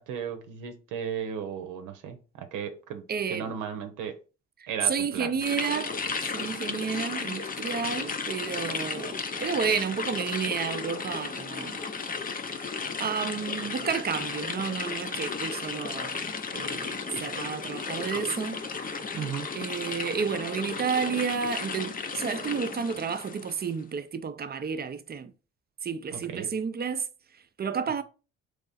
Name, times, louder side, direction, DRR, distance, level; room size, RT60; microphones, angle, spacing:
voice 1, 0.0-4.2 4.7-5.3 19.1-19.5 26.1-26.5, right 7 dB, 90° right, 0.8 m, -35 dB
voice 2, 3.1-3.5 4.6-5.9 6.3-11.8 13.0-16.1 16.5-18.6 19.5-25.3 25.8-27.0 27.6-28.0, right 6 dB, 30° right, 0.5 m, -31 dB
sound 1, 5.4-23.7, left 5 dB, 30° left, 0.6 m, -34 dB
3.6 x 3.2 x 4.1 m
cardioid pair, 90°, 30 cm